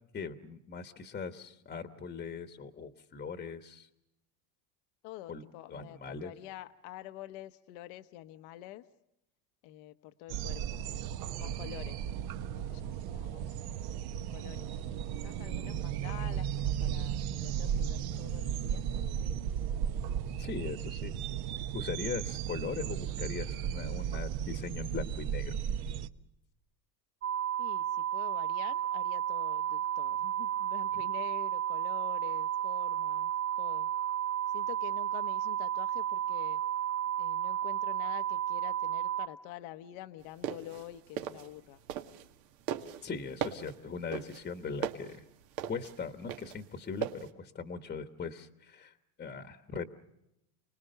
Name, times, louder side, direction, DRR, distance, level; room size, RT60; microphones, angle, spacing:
voice 1, 0.1-3.9 5.3-5.4 5.7-6.3 20.4-21.1 21.7-25.6 30.9-31.0 43.0-45.2 45.7-48.9 49.2-49.9, left 5 dB, 20° left, 8 dB, 1.2 m, -40 dB
voice 2, 5.0-8.8 9.6-10.8 11.4-12.0 12.6-13.6 14.2-19.5 27.6-33.3 33.6-33.9 34.5-36.6 37.2-41.8, left 14 dB, 65° left, 10 dB, 1.1 m, -47 dB
sound 1, 10.3-26.1, right 9 dB, 50° right, 1.0 m, -35 dB
sound 2, 27.2-39.3, right 11 dB, 25° right, 1.3 m, -32 dB
sound 3, 40.2-42.4 42.7-47.3, right 9 dB, 80° right, 2.1 m, -38 dB
30.0 x 20.0 x 6.7 m, 0.85 s
supercardioid pair, 130°, 47 cm